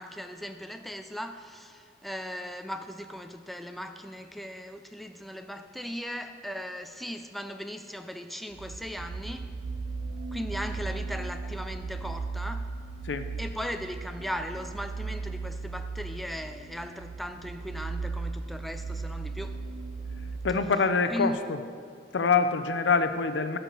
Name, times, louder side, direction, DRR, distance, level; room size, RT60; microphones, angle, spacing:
voice 1, 0.0-9.5 10.3-12.7 13.4-19.6 21.1-21.5, equal, ahead, 0.3 m, -38 dB
sound 1, 8.5-20.6, right 4 dB, 70° right, 0.5 m, -36 dB
voice 2, 20.4-21.6 22.1-23.6, left 5 dB, 70° left, 0.5 m, -25 dB
12.5 x 4.7 x 6.5 m
head